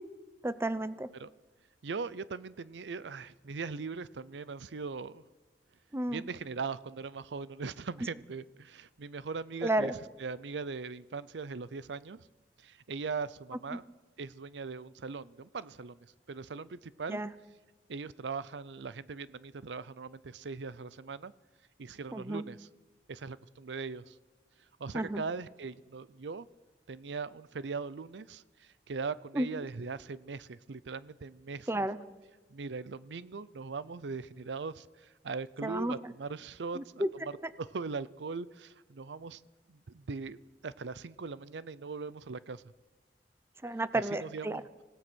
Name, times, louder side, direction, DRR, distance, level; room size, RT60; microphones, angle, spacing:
voice 1, 0.4-1.1 5.9-6.2 9.6-9.9 17.1-17.3 22.1-22.4 24.9-25.2 29.4-29.5 31.7-32.0 35.6-35.9 36.8-37.1 43.6-44.6, right 1 dB, 15° right, 15 dB, 0.7 m, -31 dB
voice 2, 1.8-5.2 6.1-9.9 10.2-12.3 12.6-13.8 14.2-16.0 16.3-17.2 17.9-21.3 21.8-22.7 23.1-24.2 24.8-26.5 26.9-31.9 32.5-39.4 39.7-40.4 40.6-42.6 44.0-44.6, right 4 dB, 85° right, 18 dB, 0.6 m, -40 dB
26.0 x 17.0 x 6.2 m, 1.3 s
head